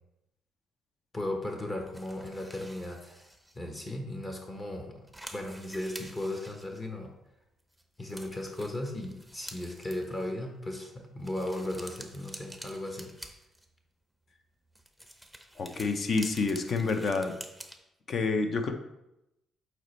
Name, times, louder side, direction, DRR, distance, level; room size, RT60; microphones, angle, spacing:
voice 1, 1.1-3.3 3.5-5.0 5.3-7.1 8.0-13.1, left 1 dB, 25° left, 2 dB, 1.0 m, -36 dB
sound 1, 1.9-3.6 4.2-4.3 4.6-4.7 4.9-7.2 7.7-7.8 8.1-10.3 11.2-13.9 14.7-17.8, right 1 dB, ahead, 0.7 m, -48 dB
voice 2, 15.6-17.3 18.1-18.7, left 4 dB, 50° left, 7 dB, 0.7 m, -28 dB
7.8 x 4.3 x 3.2 m, 0.89 s
cardioid pair, 95°, 0 cm